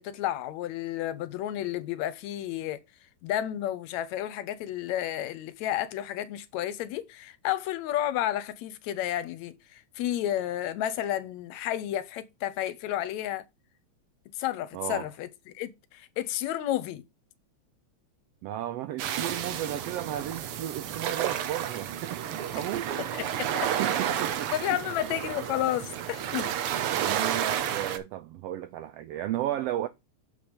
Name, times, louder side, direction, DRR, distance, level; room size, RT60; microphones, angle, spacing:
voice 1, 0.0-2.8 3.2-13.4 14.4-17.0 23.1-23.7 24.5-26.5, left 12 dB, 80° left, 1.9 m, -31 dB
voice 2, 14.7-15.1 18.4-22.9 23.4-24.8 27.0-29.9, right 12 dB, 85° right, 1.4 m, -34 dB
sound 1, 19.0-28.0, right 10 dB, 70° right, 1.4 m, -31 dB
7.3 x 5.2 x 5.0 m
omnidirectional pair, 3.4 m